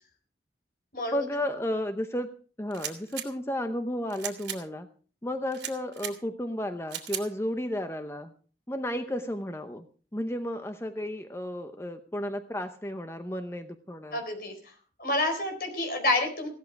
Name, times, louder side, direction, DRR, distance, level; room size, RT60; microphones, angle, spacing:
voice 1, 1.1-2.3 2.6-4.9 5.2-8.3 8.7-9.9 10.1-14.2, left 1 dB, 15° left, 8 dB, 0.8 m, -33 dB
sound 1, 2.7-3.3 4.1-4.6 5.5-6.1 6.9-7.2, right 10 dB, 90° right, 2.6 m, -36 dB
voice 2, 14.1-14.5 15.0-16.5, left 2 dB, 55° left, 4 dB, 4.2 m, -28 dB
16.5 x 13.0 x 4.7 m, 0.41 s
head